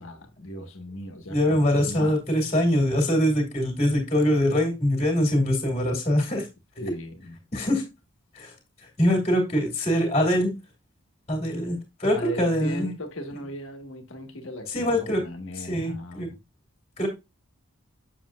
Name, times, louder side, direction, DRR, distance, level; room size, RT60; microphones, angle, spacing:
voice 1, 0.0-2.2 6.8-7.4 12.1-16.4, equal, 60° left, 1.7 m, -37 dB
voice 2, 1.3-6.5 7.5-7.8 8.3-8.5 9.0-10.5 11.3-12.9 14.7-15.2 15.6-16.3 17.0-17.1, equal, 30° left, 2.5 m, -23 dB
7.6 x 7.0 x 2.5 m
head